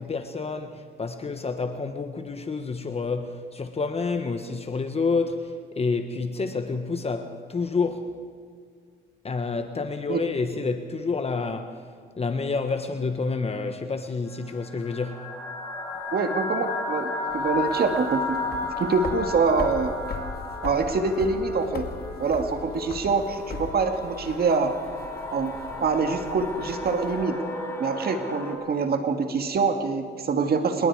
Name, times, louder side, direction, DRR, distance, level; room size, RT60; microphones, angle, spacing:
voice 1, 0.0-8.1 9.2-11.7 12.2-15.2, left 4 dB, 30° left, 7 dB, 1.3 m, -29 dB
sound 1, 14.3-28.5, left 2 dB, 15° left, 5.5 m, -34 dB
voice 2, 16.1-18.4 18.8-19.9 20.6-21.9 22.2-24.7 25.3-25.5 25.8-27.4 27.8-30.9, right 4 dB, 50° right, 6 dB, 1.8 m, -25 dB
sound 2, 17.3-27.2, left 5 dB, 50° left, 2.1 m, -40 dB
27.5 x 20.5 x 4.8 m, 2.1 s
cardioid pair, 90°, 20 cm